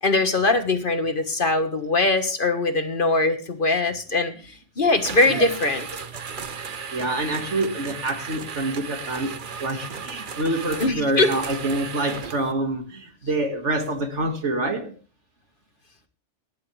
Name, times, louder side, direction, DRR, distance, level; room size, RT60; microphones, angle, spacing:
voice 1, 0.0-4.3 4.8-5.9 10.8-11.3, left 2 dB, 45° left, 1.6 m, -21 dB
sound 1, 5.0-12.5, right 6 dB, 45° right, 1.0 m, -35 dB
voice 2, 6.9-14.9, right 2 dB, 70° right, 2.3 m, -26 dB
18.5 x 11.0 x 3.4 m
omnidirectional pair, 1.2 m